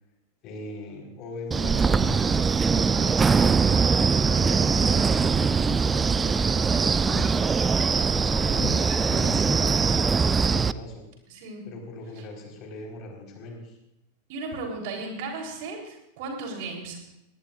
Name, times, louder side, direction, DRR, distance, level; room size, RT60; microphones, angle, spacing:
voice 1, 0.4-3.6 4.5-7.5 8.1-11.0 11.7-13.8, left 2 dB, 35° left, 1 dB, 4.3 m, -39 dB
Wind, 1.5-10.7, right 5 dB, 15° right, 0.4 m, -22 dB
voice 2, 4.2-4.9 11.3-11.7 14.3-17.0, right 3 dB, 50° right, 1 dB, 3.6 m, -36 dB
22.0 x 18.0 x 2.5 m, 0.87 s
figure-of-eight pair, 90°, 0 cm